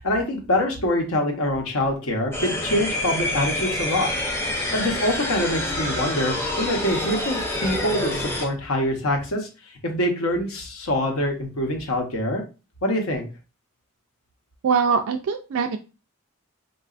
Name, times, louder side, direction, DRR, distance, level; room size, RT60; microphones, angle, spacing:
voice 1, 0.0-4.1 4.7-9.5 9.8-12.4 12.8-13.3, left 1 dB, 75° left, 3 dB, 0.8 m, -25 dB
sound 1, 2.3-8.5, left 1 dB, 10° left, 0.5 m, -27 dB
voice 2, 14.6-15.8, right 6 dB, 70° right, 5 dB, 0.3 m, -22 dB
3.8 x 2.3 x 2.4 m, 0.32 s
head